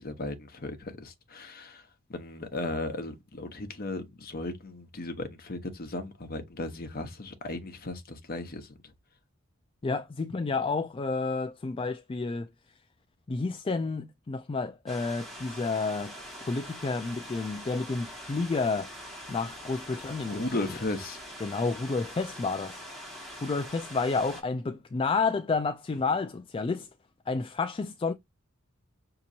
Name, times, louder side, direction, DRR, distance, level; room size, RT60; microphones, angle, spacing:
voice 1, 0.0-8.7 20.3-21.2, left 2 dB, 45° left, 0.9 m, -36 dB
voice 2, 9.8-12.5 13.3-16.1 16.4-18.9 19.3-20.6 21.4-22.8 23.1-26.9 27.3-28.1, left 4 dB, 25° left, 0.3 m, -30 dB
sound 1, 14.9-24.4, equal, ahead, 1.9 m, -44 dB
6.1 x 2.9 x 2.7 m
head